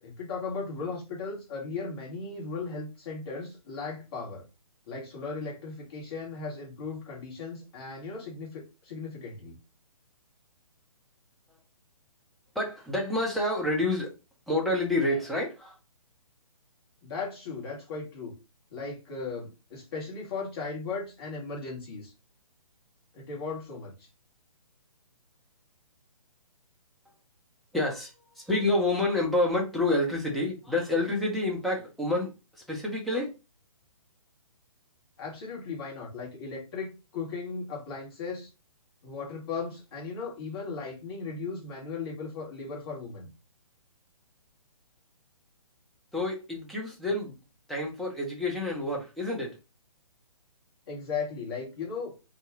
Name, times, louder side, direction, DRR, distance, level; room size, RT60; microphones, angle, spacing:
voice 1, 0.0-4.4 4.9-9.6 17.0-18.3 18.7-22.1 23.1-24.1 35.2-38.5 39.0-43.3 50.9-52.1, left 4 dB, 45° left, 1.4 m, -37 dB
voice 2, 12.6-14.1 14.5-15.8 27.7-33.3 46.1-47.4 47.7-49.6, left 2 dB, ahead, 0.4 m, -28 dB
2.6 x 2.4 x 3.3 m
figure-of-eight pair, 135°, 18 cm